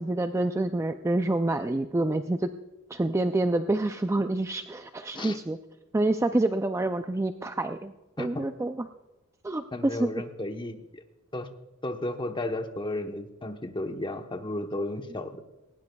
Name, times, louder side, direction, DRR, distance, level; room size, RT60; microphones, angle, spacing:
voice 1, 0.0-2.5 2.9-5.6 5.9-7.9 8.2-8.8 9.4-10.1, right 2 dB, 15° right, 8 dB, 0.4 m, -27 dB
voice 2, 9.7-11.0 11.3-11.5 11.8-15.4, left 1 dB, 20° left, 6 dB, 1.0 m, -33 dB
19.0 x 18.5 x 2.3 m, 1.1 s
head